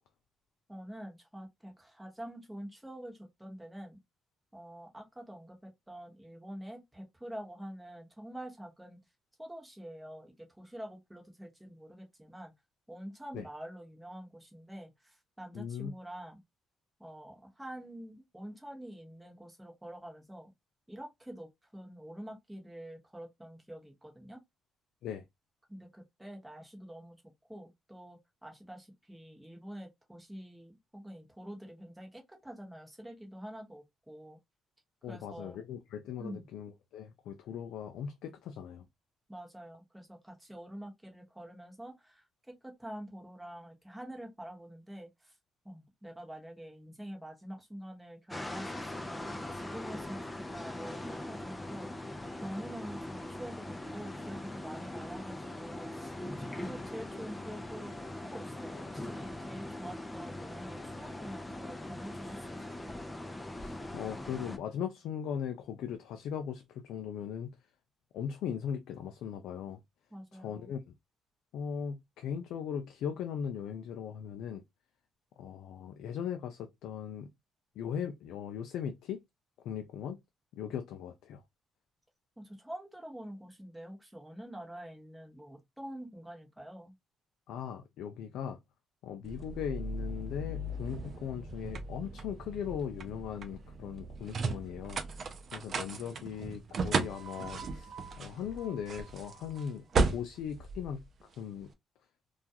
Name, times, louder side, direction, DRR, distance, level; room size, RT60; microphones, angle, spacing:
voice 1, 0.7-4.0 4.5-9.0 9.4-12.5 12.9-16.4 17.0-20.5 20.9-24.4 25.7-27.2 27.5-34.4 35.1-35.6 36.2-36.5 39.3-45.3 45.6-51.9 52.4-63.0 70.1-70.7 82.4-86.9, equal, 10° right, 1.0 m, -46 dB
voice 2, 15.5-15.9 25.0-25.2 35.0-38.8 63.6-67.5 68.1-69.8 70.3-70.8 71.5-74.6 75.4-77.3 77.8-79.2 79.6-80.2 80.6-81.4 87.5-88.6 89.0-95.0 95.5-99.8 100.1-101.0 101.4-101.7, left 8 dB, 85° left, 0.3 m, -39 dB
sound 1, 48.3-64.6, left 1 dB, 15° left, 0.5 m, -41 dB
sound 2, 89.2-101.6, right 3 dB, 50° right, 0.5 m, -36 dB
2.3 x 2.2 x 2.6 m
cardioid pair, 90°, 0 cm